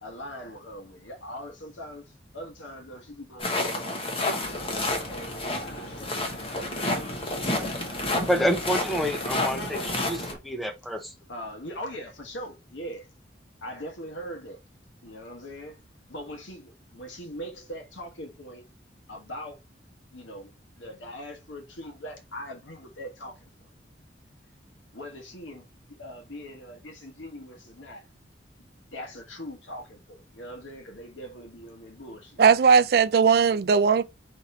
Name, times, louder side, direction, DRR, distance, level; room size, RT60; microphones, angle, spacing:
voice 1, 0.0-6.1 11.3-13.1 13.6-14.6 15.0-15.8 16.1-18.7 19.1-19.6 20.1-23.7 24.9-28.1 28.9-32.4, equal, 90° left, 1.3 m, -41 dB
sound 1, 3.4-10.3, left 2 dB, 30° left, 1.0 m, -30 dB
sound 2, 4.4-10.4, equal, 65° left, 1.2 m, -41 dB
voice 2, 8.3-11.1, equal, ahead, 0.6 m, -28 dB
voice 3, 32.4-34.0, right 6 dB, 55° right, 0.3 m, -18 dB
4.4 x 3.0 x 4.0 m
head